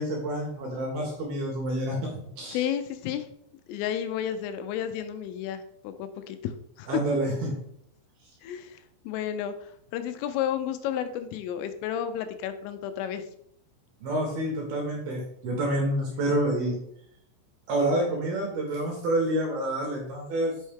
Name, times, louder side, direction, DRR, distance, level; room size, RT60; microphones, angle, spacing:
voice 1, 0.0-2.1 2.4-2.6 6.9-7.5 14.0-16.8 17.7-20.5, right 1 dB, 65° right, 0 dB, 2.6 m, -28 dB
voice 2, 2.5-3.3 3.7-7.2 8.4-13.2, left 9 dB, 85° left, 10 dB, 3.1 m, -32 dB
8.3 x 5.6 x 3.5 m, 0.72 s
omnidirectional pair, 5.8 m